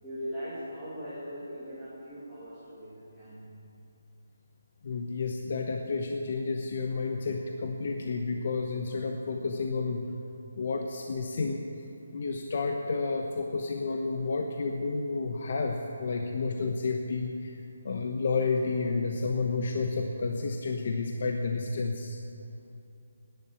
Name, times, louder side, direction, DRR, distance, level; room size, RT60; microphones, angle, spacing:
voice 1, 0.0-3.7, equal, 5° left, -14 dB, 2.5 m, -40 dB
voice 2, 4.8-10.0 10.6-11.7 12.1-22.2, left 4 dB, 45° left, 3 dB, 1.0 m, -31 dB
15.5 x 10.5 x 8.4 m, 2.7 s
hypercardioid pair, 175°, 0 cm